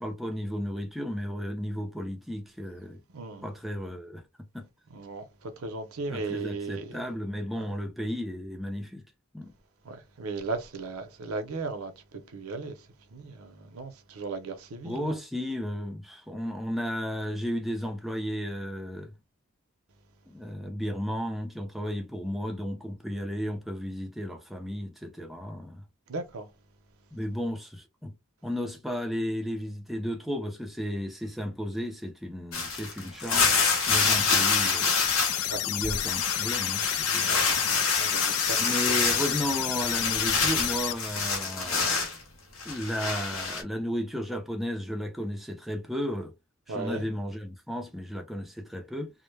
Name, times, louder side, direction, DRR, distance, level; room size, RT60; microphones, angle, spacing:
voice 1, 0.0-3.0 3.4-4.2 4.5-4.7 6.1-9.0 9.3-9.5 14.8-19.1 20.3-25.8 27.1-28.1 28.4-33.5 33.9-34.9 35.6-37.7 38.6-42.0 42.6-46.3 46.7-49.1, equal, ahead, 0.4 m, -34 dB
voice 2, 4.9-7.0 7.6-7.7 9.9-12.8 13.1-15.2 26.1-26.5 34.0-34.3 35.5-35.6 37.2-37.4 37.7-38.6 38.9-39.0 46.7-47.0, right 3 dB, 80° right, 0.6 m, -36 dB
sound 1, 32.5-35.5 35.8-42.2 42.6-43.6, left 4 dB, 70° left, 0.7 m, -27 dB
sound 2, 33.9-40.9, left 13 dB, 85° left, 0.3 m, -31 dB
2.1 x 2.0 x 3.1 m
head